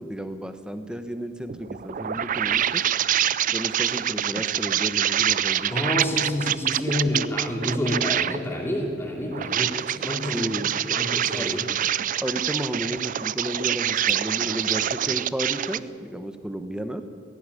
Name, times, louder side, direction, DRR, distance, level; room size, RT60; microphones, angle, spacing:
voice 1, 0.0-2.8 3.5-5.7 10.3-10.8 11.4-11.6 12.2-17.0, equal, 5° right, 9 dB, 1.1 m, -32 dB
sound 1, 1.5-8.4 9.2-15.8, right 10 dB, 40° right, 0.4 m, -26 dB
voice 2, 5.7-10.5 10.9-11.7, left 1 dB, 10° left, 0 dB, 3.0 m, -28 dB
16.5 x 16.0 x 9.9 m, 2.3 s
head